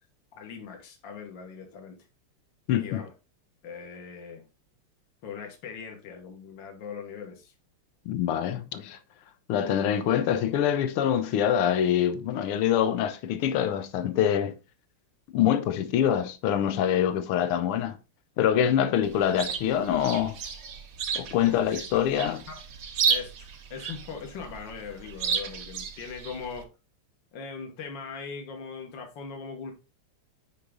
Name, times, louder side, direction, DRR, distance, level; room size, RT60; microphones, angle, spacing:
voice 1, 0.4-2.0 2.8-3.1 3.6-4.5 5.2-7.5 21.5-21.6 22.5-22.6 23.1-26.7 27.3-29.7, left 5 dB, 60° left, 2.1 m, -40 dB
voice 2, 2.7-3.0 8.1-9.0 9.5-14.6 15.3-18.0 18.4-20.4 21.1-22.4, left 9 dB, 80° left, 1.7 m, -25 dB
Chirp tweet, 19.0-26.6, right 6 dB, 55° right, 1.0 m, -33 dB
8.4 x 5.0 x 3.8 m
omnidirectional pair, 2.4 m